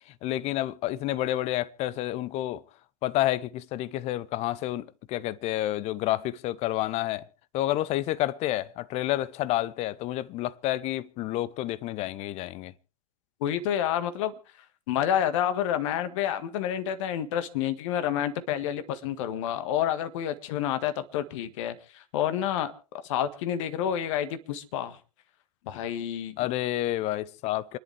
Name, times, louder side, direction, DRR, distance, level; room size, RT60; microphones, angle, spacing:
voice 1, 0.2-2.6 3.0-7.3 7.5-12.7 26.4-27.8, left 15 dB, 35° left, 0.8 m, -29 dB
voice 2, 13.4-14.3 14.9-22.7 23.0-25.0 25.7-26.4, left 10 dB, 50° left, 1.7 m, -29 dB
28.0 x 11.0 x 3.4 m
figure-of-eight pair, 95°, 20 cm